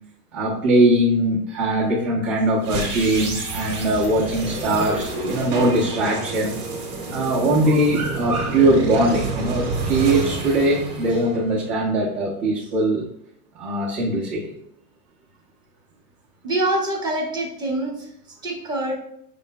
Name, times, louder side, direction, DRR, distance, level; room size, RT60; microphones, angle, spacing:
voice 1, 0.3-6.6 7.1-13.0 13.5-14.5, right 1 dB, 75° right, -7 dB, 1.3 m, -21 dB
sound 1, 2.6-11.8, right 3 dB, 45° right, 1.4 m, -29 dB
voice 2, 16.4-18.1 18.4-18.9, right 1 dB, 10° right, 1 dB, 0.3 m, -25 dB
5.1 x 3.7 x 2.3 m, 0.71 s
hypercardioid pair, 125°, 45 cm